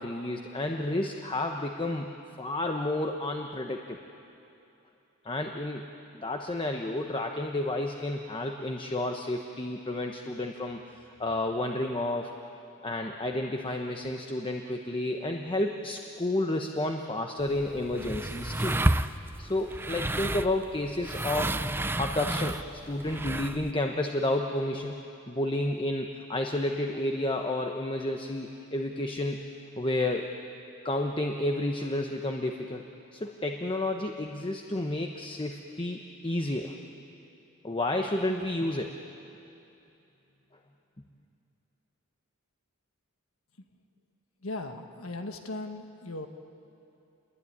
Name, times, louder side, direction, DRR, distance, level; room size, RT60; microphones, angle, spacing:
voice 1, 0.0-2.1 2.4-4.0 5.2-5.8 6.1-10.8 11.2-12.3 12.8-18.8 19.4-21.5 22.0-22.6 22.9-25.0 25.3-29.4 29.8-30.3 30.8-32.8 33.1-36.8 37.6-38.9, left 1 dB, 25° left, 3 dB, 1.1 m, -31 dB
sound 1, 17.4-23.7, right 1 dB, 10° right, 0.5 m, -31 dB
voice 2, 44.4-46.3, left 2 dB, 75° left, 5 dB, 1.5 m, -37 dB
27.5 x 21.5 x 9.9 m, 2.8 s
head